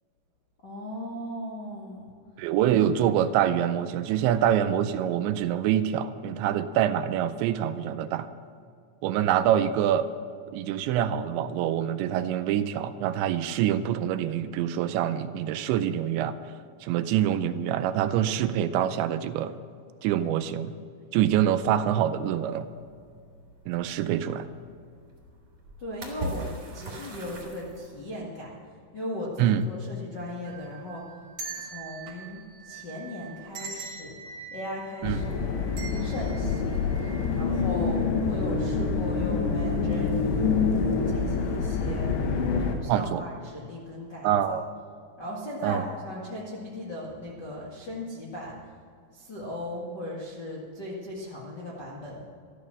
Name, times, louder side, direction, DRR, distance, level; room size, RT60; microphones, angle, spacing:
voice 1, 0.6-2.2 25.8-28.6 28.9-31.1 31.6-34.1 34.5-35.6 36.0-36.8 37.3-40.5 41.0-42.2 42.6-44.6 45.2-48.6 49.1-52.2, left 1 dB, 50° left, -6 dB, 1.2 m, -37 dB
voice 2, 2.4-8.3 9.0-10.1 10.5-16.4 16.8-19.5 20.0-20.7 21.1-22.7 23.7-24.5 29.4-29.6 35.0-35.2 42.9-43.2 44.2-44.7 45.6-45.8, right 10 dB, 85° right, 11 dB, 2.9 m, -25 dB
sound 1, 21.4-28.1, right 2 dB, 30° right, 2.6 m, -42 dB
sound 2, 30.4-37.6 38.0-38.1 39.0-39.3 39.6-39.8, right 5 dB, 65° right, 1.7 m, -43 dB
sound 3, 35.0-42.8, left 4 dB, 70° left, 3.3 m, -26 dB
14.0 x 12.5 x 6.3 m, 2.2 s
omnidirectional pair, 5.3 m